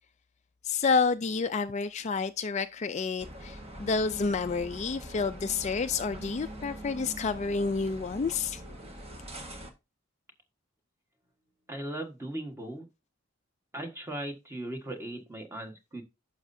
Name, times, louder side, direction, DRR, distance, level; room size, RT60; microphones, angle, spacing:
voice 1, 0.6-8.6, left 4 dB, 35° left, 0.4 m, -29 dB
sound 1, 3.2-9.7, right 1 dB, 30° right, 1.5 m, -43 dB
voice 2, 11.7-12.8 13.7-16.0, right 1 dB, 10° right, 1.4 m, -38 dB
11.0 x 6.5 x 2.6 m
head